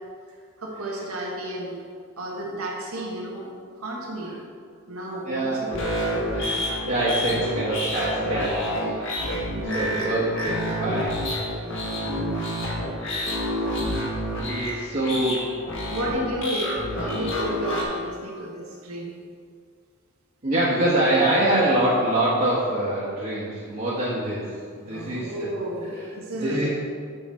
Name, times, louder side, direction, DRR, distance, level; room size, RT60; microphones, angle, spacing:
voice 1, 0.6-1.8 2.2-3.5 3.8-4.4 4.9-5.8 9.6-10.1 11.5-11.9 15.9-19.1 24.8-26.7, right 1 dB, 90° right, -2 dB, 1.5 m, -32 dB
voice 2, 5.3-5.6 6.3-9.1 9.6-11.2 11.5-11.7 13.8-14.0 14.3-15.5 20.4-25.5 25.9-26.1 26.3-26.7, right 1 dB, 45° right, -9 dB, 1.2 m, -25 dB
sound 1, 5.7-17.8, equal, 60° left, 1.5 m, -28 dB
8.5 x 5.0 x 4.2 m, 2.2 s
head